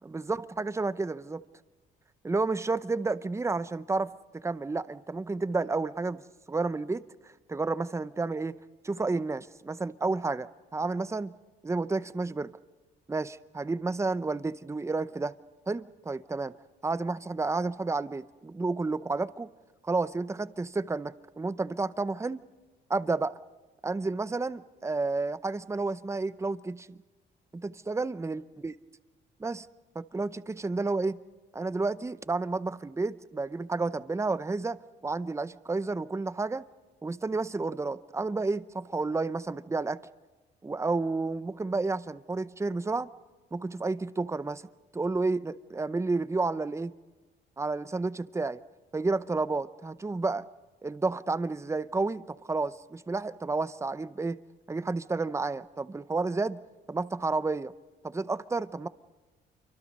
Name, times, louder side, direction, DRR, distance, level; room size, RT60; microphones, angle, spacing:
voice 1, 0.1-1.4 2.2-6.2 6.5-7.0 7.5-8.6 8.8-11.3 11.6-12.6 13.1-15.4 15.7-16.5 16.8-19.5 19.8-22.4 22.9-23.3 23.8-27.0 27.5-28.7 29.4-29.7 29.9-31.2 31.5-36.6 37.0-40.0 40.6-43.1 43.5-44.7 44.9-46.9 47.6-48.6 48.9-50.5 50.8-54.4 54.7-56.6 56.9-57.7 58.0-58.9, right 3 dB, 15° right, 15 dB, 0.6 m, -31 dB
27.0 x 24.0 x 5.4 m, 1.2 s
cardioid pair, 90°, 20 cm